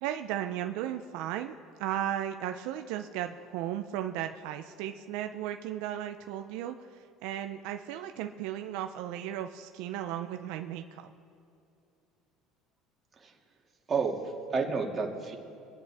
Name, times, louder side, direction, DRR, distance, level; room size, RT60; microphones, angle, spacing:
voice 1, 0.0-11.1, right 11 dB, 75° right, 7 dB, 0.5 m, -35 dB
voice 2, 13.9-15.4, right 4 dB, 30° right, 0 dB, 2.2 m, -31 dB
23.0 x 10.0 x 3.5 m, 2.6 s
supercardioid pair, 95°, 0 cm